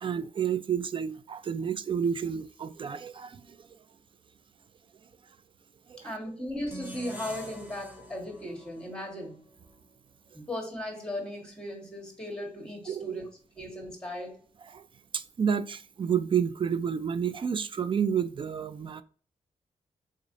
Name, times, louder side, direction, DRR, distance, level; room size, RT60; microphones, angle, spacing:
voice 1, 0.0-3.6 5.9-6.2 12.9-13.2 14.7-14.9 15.1-19.0, right 7 dB, 40° right, 0.3 m, -30 dB
voice 2, 6.0-9.4 10.3-13.2 13.6-14.4, left 1 dB, 5° left, 1.5 m, -37 dB
sound 1, 6.7-9.9, right 1 dB, 10° right, 0.9 m, -45 dB
3.7 x 3.1 x 2.6 m
wide cardioid pair, 100°, 13 cm